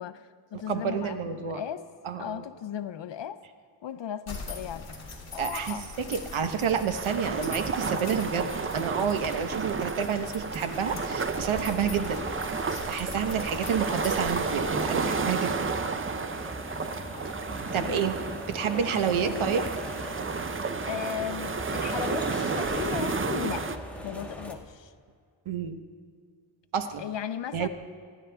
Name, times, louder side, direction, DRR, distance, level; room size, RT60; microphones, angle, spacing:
voice 1, 0.0-1.8 2.2-3.4 3.8-5.0 5.3-5.9 17.7-19.5 20.8-24.9 27.0-27.7, left 9 dB, 65° left, 0.6 m, -37 dB
voice 2, 0.5-1.6 2.0-2.4 5.4-5.7 6.1-12.2 12.9-15.8 17.7-18.2 18.5-19.6 25.5-25.8 26.7-27.0 27.5-27.7, right 7 dB, 80° right, 1.0 m, -29 dB
sound 1, 4.3-15.8, left 3 dB, 35° left, 2.3 m, -42 dB
sound 2, 6.9-23.8, right 5 dB, 25° right, 0.5 m, -32 dB
sound 3, 11.3-24.5, left 1 dB, 5° left, 1.4 m, -39 dB
24.0 x 10.5 x 3.4 m
wide cardioid pair, 125°, 48 cm